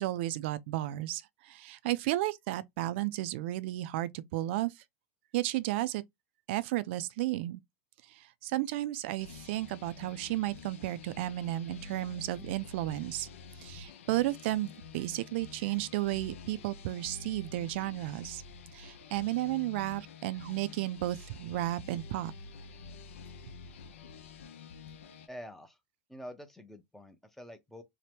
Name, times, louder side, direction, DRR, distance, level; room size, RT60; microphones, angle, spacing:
voice 1, 0.0-4.7 5.3-6.0 6.5-7.6 8.1-13.3 13.6-18.4 18.7-22.3, right 16 dB, 60° right, 0.4 m, -33 dB
sound 1, 9.2-25.3, left 4 dB, 75° left, 0.5 m, -48 dB
voice 2, 25.3-25.8 26.1-27.8, equal, 5° left, 0.5 m, -47 dB
2.8 x 2.1 x 3.3 m
hypercardioid pair, 115°, 7 cm